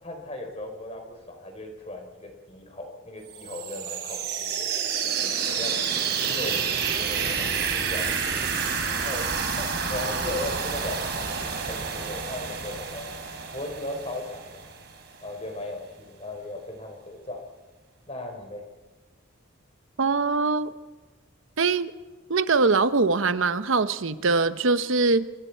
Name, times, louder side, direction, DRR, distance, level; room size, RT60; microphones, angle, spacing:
voice 1, 0.0-4.7 5.0-5.8 6.2-8.3 8.9-9.3 9.6-13.1 13.5-14.7 15.2-17.4 18.1-18.6, left 1 dB, 30° left, 3 dB, 4.1 m, -37 dB
sound 1, 3.3-15.0, right 6 dB, 55° right, 3.9 m, -29 dB
voice 2, 20.0-20.7 21.6-21.9 22.3-25.3, right 4 dB, 75° right, 12 dB, 0.9 m, -22 dB
29.5 x 24.0 x 4.6 m, 1.3 s
head